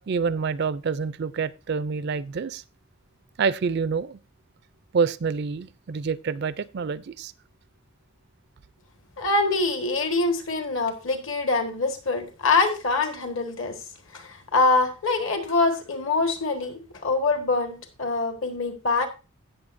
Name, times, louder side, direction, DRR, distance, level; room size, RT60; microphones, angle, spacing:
voice 1, 0.1-2.6 3.4-4.2 4.9-7.3, right 5 dB, 50° right, 0.4 m, -27 dB
voice 2, 9.2-13.8 14.1-19.1, left 3 dB, 60° left, 1.5 m, -24 dB
16.5 x 6.7 x 2.6 m
head